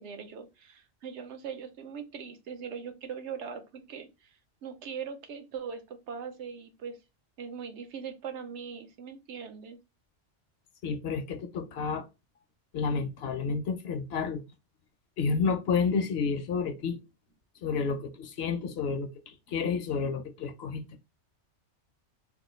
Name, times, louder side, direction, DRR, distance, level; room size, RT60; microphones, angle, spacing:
voice 1, 0.0-7.0 7.4-9.8, right 6 dB, 75° right, 0.9 m, -41 dB
voice 2, 10.8-12.0 12.7-14.4 15.2-17.0 17.6-21.0, left 5 dB, 65° left, 0.7 m, -30 dB
3.4 x 2.4 x 3.0 m
omnidirectional pair, 1.2 m